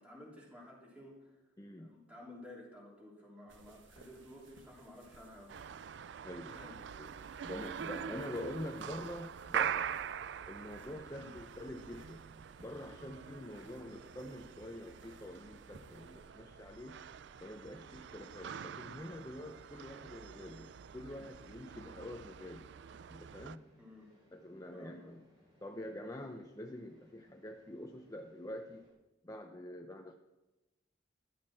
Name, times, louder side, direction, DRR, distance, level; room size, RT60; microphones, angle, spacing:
voice 1, 0.0-1.3 1.8-6.1 6.5-6.8 7.2-7.4 11.1-11.3 23.8-24.1 24.7-25.1, left 1 dB, 5° right, -4 dB, 3.5 m, -54 dB
voice 2, 1.6-1.9 6.2-6.6 7.0-7.1 7.4-9.9 10.5-12.3 12.6-17.0 17.4-23.6 24.3-25.3 25.6-28.9 29.2-30.2, left 1 dB, 20° left, 4 dB, 0.6 m, -46 dB
sound 1, 3.5-16.3, right 2 dB, 80° right, 1.4 m, -61 dB
sound 2, 5.5-23.6, right 8 dB, 65° right, 0.4 m, -44 dB
sound 3, 11.2-28.9, left 1 dB, 35° right, 5.9 m, -68 dB
15.0 x 11.5 x 4.4 m, 1.1 s
head